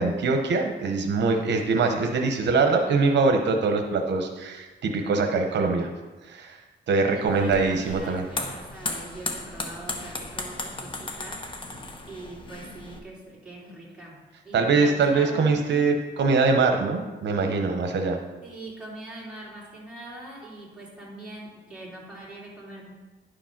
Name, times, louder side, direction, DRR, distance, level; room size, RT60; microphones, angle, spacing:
voice 1, 0.0-5.9 6.2-6.6 6.9-8.2 14.5-18.2, right 4 dB, 80° right, 4 dB, 0.9 m, -23 dB
voice 2, 7.1-11.4 12.0-15.9 18.4-22.9, right 2 dB, 5° right, -7 dB, 3.2 m, -42 dB
sound 1, 7.3-13.0, left 2 dB, 30° left, 0.9 m, -35 dB
10.5 x 5.1 x 5.9 m, 1.2 s
wide cardioid pair, 155°, 18 cm